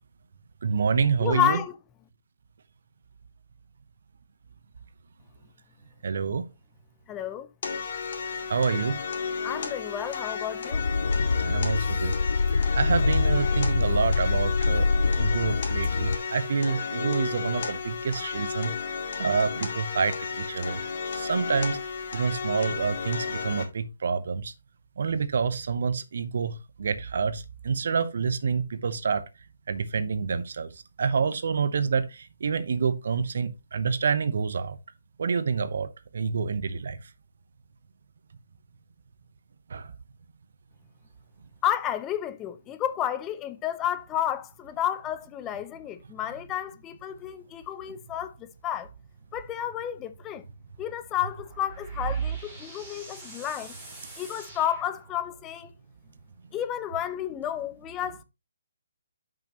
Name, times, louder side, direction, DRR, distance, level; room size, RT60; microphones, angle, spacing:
voice 1, 0.6-1.6 6.0-6.4 8.5-9.0 11.4-12.2 12.7-14.9 15.2-18.7 19.2-20.8 21.1-21.8 22.1-24.5 25.0-29.2 29.7-30.7 31.0-34.8 35.2-35.9 36.1-37.0 39.7-39.9, right 5 dB, 65° right, 0.9 m, -27 dB
voice 2, 1.2-1.7 7.1-7.5 9.4-10.9 41.6-48.9 49.3-50.4 50.8-53.7 54.2-55.7 56.5-58.2, left 11 dB, 15° left, 0.5 m, -31 dB
sound 1, 7.6-23.6, left 5 dB, 55° left, 2.1 m, -33 dB
sound 2, 10.7-16.2, left 4 dB, 80° left, 0.4 m, -25 dB
sound 3, 51.0-55.6, right 1 dB, 10° right, 3.3 m, -47 dB
10.0 x 5.9 x 3.1 m
hypercardioid pair, 155°, 0 cm